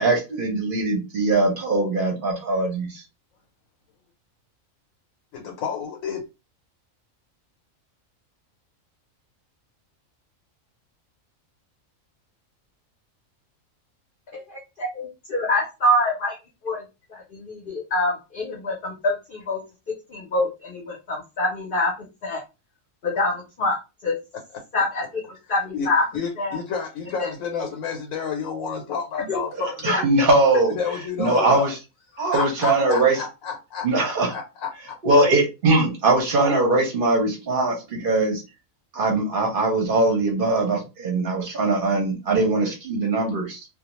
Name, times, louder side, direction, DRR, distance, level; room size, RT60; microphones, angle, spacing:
voice 1, 0.0-3.0 29.8-30.7 31.2-31.7 32.2-33.2 33.8-34.3 35.0-38.4 38.9-43.7, right 2 dB, 50° right, 0.7 m, -21 dB
voice 2, 5.3-6.2 24.5-24.6 25.7-30.0 30.7-31.7 32.1-35.0, left 6 dB, 85° left, 1.0 m, -30 dB
voice 3, 14.3-16.4 16.6-16.8 17.1-19.6 20.1-22.4 23.0-23.8 24.0-24.2 24.7-25.2 25.5-26.0 26.4-26.6 27.2-27.3 29.3-29.4 29.9-30.0, left 1 dB, 50° left, 0.7 m, -25 dB
2.3 x 2.1 x 2.9 m
omnidirectional pair, 1.4 m